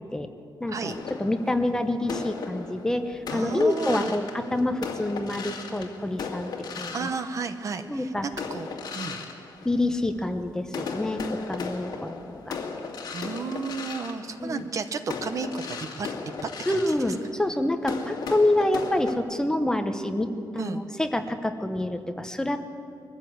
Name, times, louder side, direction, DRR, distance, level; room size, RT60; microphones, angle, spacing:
voice 1, 0.6-7.1 7.9-8.3 9.6-12.6 14.4-14.7 16.7-22.7, left 1 dB, 10° left, 7 dB, 0.9 m, -27 dB
sound 1, 0.9-7.8 8.3-10.3 10.7-19.2, left 5 dB, 60° left, 2.1 m, -37 dB
voice 2, 3.3-4.1 6.9-8.7 8.9-9.2 13.1-16.1 16.4-16.8 20.5-20.8, right 5 dB, 45° right, 10 dB, 0.9 m, -32 dB
22.5 x 15.0 x 7.9 m, 2.5 s
wide cardioid pair, 165°, 8 cm